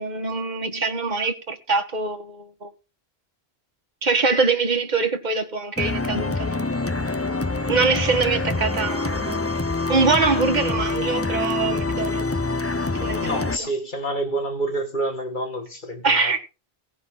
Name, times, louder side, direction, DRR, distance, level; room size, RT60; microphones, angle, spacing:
voice 1, 0.0-2.7 4.0-6.7 7.7-9.4 9.9-12.3 13.0-13.7 16.0-16.4, right 4 dB, 45° right, 1.6 m, -23 dB
sound 1, 5.8-13.6, left 3 dB, 15° left, 0.5 m, -26 dB
voice 2, 13.2-16.4, right 1 dB, 50° left, 2.3 m, -28 dB
17.0 x 6.6 x 4.0 m
omnidirectional pair, 1.1 m